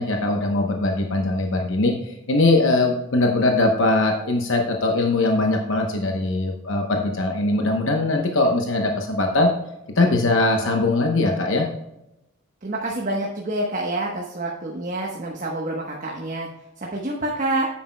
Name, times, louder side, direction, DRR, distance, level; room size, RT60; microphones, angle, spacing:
voice 1, 0.0-9.5 10.0-11.7, left 2 dB, 65° left, 2 dB, 1.0 m, -21 dB
voice 2, 12.6-16.5 16.8-17.7, right 2 dB, 40° right, -1 dB, 1.1 m, -27 dB
10.0 x 8.5 x 2.2 m, 0.89 s
head